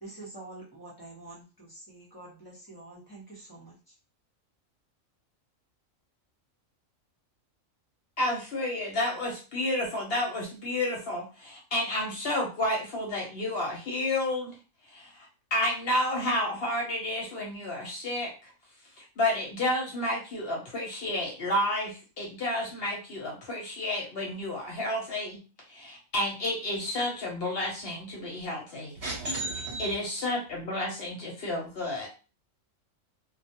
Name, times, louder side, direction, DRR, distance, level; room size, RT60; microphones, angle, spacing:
voice 1, 0.0-3.9, right 2 dB, 20° left, 0.6 m, -47 dB
voice 2, 8.2-14.5 14.8-18.5 18.8-29.0 29.8-32.1, left 1 dB, 60° left, 0.7 m, -31 dB
voice 3, 29.0-29.9 32.0-32.1, right 2 dB, 65° right, 0.6 m, -33 dB
2.2 x 2.1 x 2.7 m
omnidirectional pair, 1.4 m